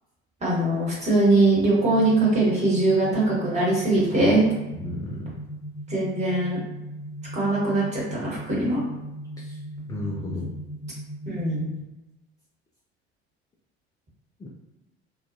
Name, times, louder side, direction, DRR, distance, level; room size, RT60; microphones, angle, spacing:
voice 1, 0.4-4.4 5.9-6.6 7.3-8.8 11.3-11.7, right 2 dB, 20° right, -6 dB, 1.3 m, -21 dB
sound 1, 1.8-11.8, right 1 dB, 80° left, 0.8 m, -38 dB
voice 2, 4.7-5.4 9.4-9.6 9.9-10.5 14.4-14.5, left 2 dB, 10° left, -4 dB, 0.4 m, -33 dB
2.3 x 2.2 x 2.6 m, 1.0 s
figure-of-eight pair, 60°, 33 cm